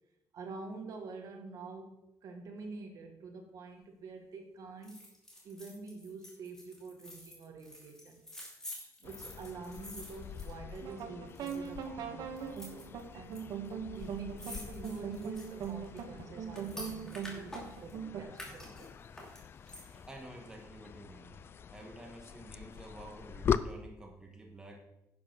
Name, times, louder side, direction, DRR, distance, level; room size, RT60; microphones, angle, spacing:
voice 1, 0.3-5.0 5.4-8.2 9.0-13.4 13.9-18.9, right 3 dB, 55° right, 4 dB, 1.8 m, -47 dB
sound 1, 4.8-11.0 11.3-11.8 12.4-13.4 13.7-13.8 14.0-17.9 18.3-20.1 20.5-20.6, left 1 dB, 10° left, 2.7 m, -49 dB
sound 2, 9.0-23.6, left 7 dB, 35° left, 0.4 m, -42 dB
sound 3, 10.8-18.2, right 7 dB, 75° right, 1.6 m, -41 dB
voice 2, 20.1-21.3 21.7-24.8, right 1 dB, 10° right, 1 dB, 1.5 m, -50 dB
10.5 x 6.7 x 6.2 m, 0.88 s
cardioid pair, 175°, 7 cm